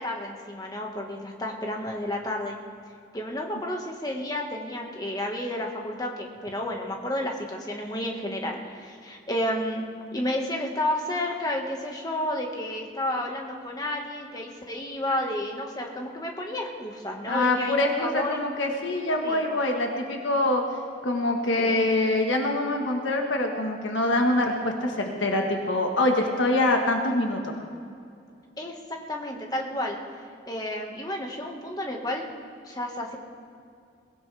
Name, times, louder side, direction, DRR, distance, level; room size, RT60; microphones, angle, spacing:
voice 1, 0.0-2.6 3.1-9.8 10.1-18.4 19.2-19.5 21.6-21.8 28.6-30.0 30.5-32.2 32.6-33.2, left 1 dB, 20° left, 1 dB, 1.5 m, -31 dB
voice 2, 17.3-20.6 21.0-27.5, left 2 dB, 85° left, 2 dB, 1.4 m, -24 dB
22.0 x 16.5 x 3.4 m, 2.4 s
head